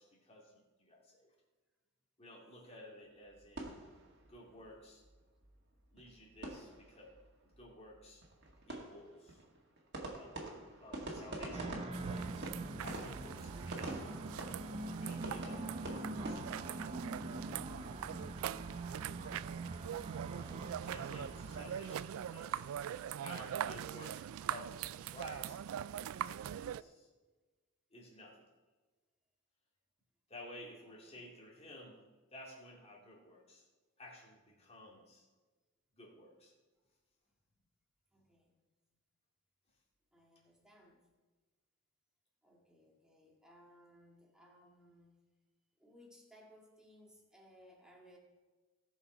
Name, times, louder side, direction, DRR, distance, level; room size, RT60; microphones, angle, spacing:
voice 1, 0.0-1.3 2.2-3.8 4.3-5.0 5.9-7.1 7.4-8.2 8.7-9.4 10.1-12.5 12.8-14.0 15.0-17.0 17.7-18.4 19.5-19.9 20.3-22.6 23.2-27.1 27.9-28.4 30.3-32.0 32.3-33.7 34.0-35.3 36.0-36.5, left 1 dB, 30° left, -2 dB, 2.5 m, -54 dB
sound 1, 3.2-4.7 5.0-5.1 5.4-5.5 5.8-7.2 7.5-7.6 7.9-16.4, right 2 dB, 55° right, 1.9 m, -47 dB
sound 2, 11.5-21.6, right 2 dB, 25° right, 0.6 m, -44 dB
sound 3, 11.9-26.8, right 10 dB, 75° right, 0.3 m, -43 dB
voice 2, 30.8-31.3 36.3-36.4 38.1-38.5 40.1-41.0 42.4-45.2 45.8-48.2, equal, 5° right, -2 dB, 2.1 m, -62 dB
18.0 x 6.3 x 4.5 m, 1.3 s
head